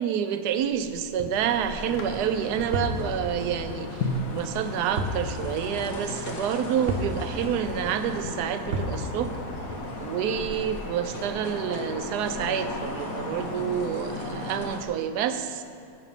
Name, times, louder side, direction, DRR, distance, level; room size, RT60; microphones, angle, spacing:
voice 1, 0.0-9.4 10.0-15.6, right 8 dB, 70° right, 9 dB, 1.1 m, -28 dB
sound 1, 0.6-14.9, left 2 dB, 75° left, 1.6 m, -40 dB
sound 2, 1.4-14.8, left 2 dB, 50° left, 1.6 m, -36 dB
sound 3, 2.7-3.0 5.0-5.2 5.6-5.7 6.9-7.2 8.7-9.0, right 1 dB, 45° right, 1.1 m, -29 dB
11.0 x 8.2 x 5.7 m, 2.4 s
omnidirectional pair, 2.0 m